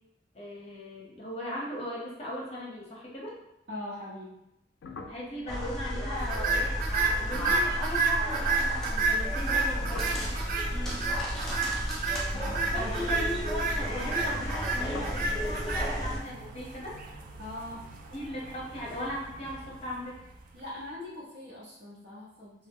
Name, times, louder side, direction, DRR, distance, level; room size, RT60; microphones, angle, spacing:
voice 1, 0.3-3.4 5.1-6.9 7.2-10.1 12.7-17.0 18.1-20.2, left 1 dB, 35° left, -3 dB, 0.7 m, -38 dB
voice 2, 3.7-4.4 10.7-11.1 12.7-13.1 17.4-17.9 20.5-22.7, left 1 dB, 65° right, -8 dB, 1.0 m, -41 dB
sound 1, 4.8-9.1 9.4-11.6 12.2-14.5 14.8-15.3, left 3 dB, 75° left, 0.3 m, -48 dB
sound 2, 5.5-16.2, equal, ahead, 0.5 m, -33 dB
sound 3, 6.2-20.5, right 3 dB, 50° right, 0.3 m, -32 dB
2.3 x 2.0 x 3.6 m, 0.84 s
head